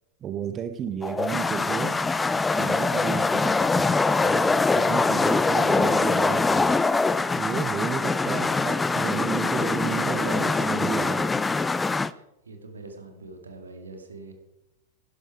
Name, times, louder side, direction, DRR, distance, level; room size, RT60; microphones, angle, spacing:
voice 1, 0.2-2.1 2.5-6.8 7.3-11.3, right 8 dB, 30° right, 10 dB, 0.7 m, -32 dB
sound 1, 1.0-12.1, left 3 dB, 10° left, 0.4 m, -23 dB
voice 2, 9.6-10.5 12.1-14.3, right 3 dB, 75° right, 4 dB, 2.2 m, -43 dB
12.0 x 11.5 x 4.6 m, 0.91 s
figure-of-eight pair, 90°, 0 cm